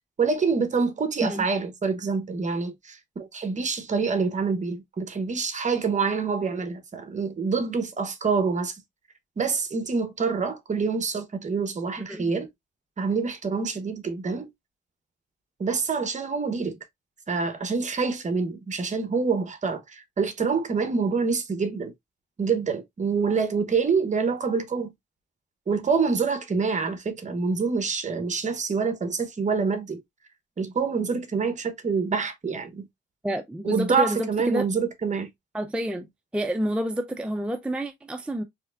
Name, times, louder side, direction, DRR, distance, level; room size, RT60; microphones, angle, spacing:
voice 1, 0.2-8.8 9.4-12.5 13.0-14.5 15.6-16.8 17.3-21.9 22.4-24.9 25.7-30.0 30.6-32.9 33.6-35.3, right 5 dB, 35° right, 1.0 m, -26 dB
voice 2, 33.2-34.7 35.5-38.4, equal, 5° right, 0.4 m, -29 dB
4.2 x 3.3 x 2.4 m
cardioid pair, 100°, 20 cm